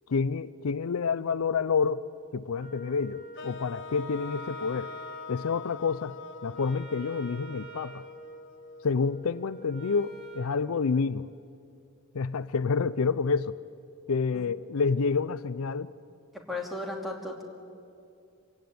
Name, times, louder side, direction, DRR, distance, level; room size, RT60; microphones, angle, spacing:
voice 1, 0.1-2.0 2.3-4.9 5.3-6.1 6.4-8.0 8.8-11.3 12.1-13.6 14.1-15.9, left 5 dB, 70° left, 15 dB, 0.5 m, -28 dB
Wind instrument woodwind instrument, 2.6-10.5, right 2 dB, 30° right, 2.6 m, -48 dB
sound 1, 3.4-9.4, left 5 dB, 55° left, 1.0 m, -44 dB
voice 2, 16.5-17.4, left 2 dB, ahead, 0 dB, 3.0 m, -35 dB
26.0 x 16.5 x 9.3 m, 2.5 s
head